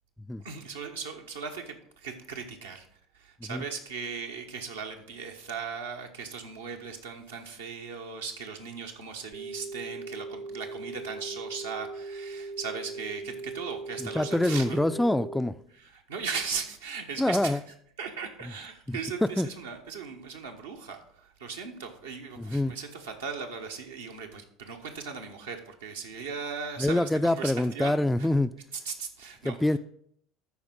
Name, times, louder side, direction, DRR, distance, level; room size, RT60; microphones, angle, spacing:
voice 1, 0.4-2.9 3.1-14.8 15.8-17.6 18.0-27.9 28.2-28.3 28.8-29.8, right 5 dB, 75° right, 1.1 m, -38 dB
sound 1, 9.3-15.4, right 3 dB, 35° right, 0.8 m, -39 dB
voice 2, 14.0-15.6 17.2-17.6 18.9-19.5 22.4-22.8 26.8-28.5 29.4-29.8, left 1 dB, 5° left, 0.3 m, -26 dB
13.0 x 4.8 x 3.8 m
figure-of-eight pair, 65°, 0 cm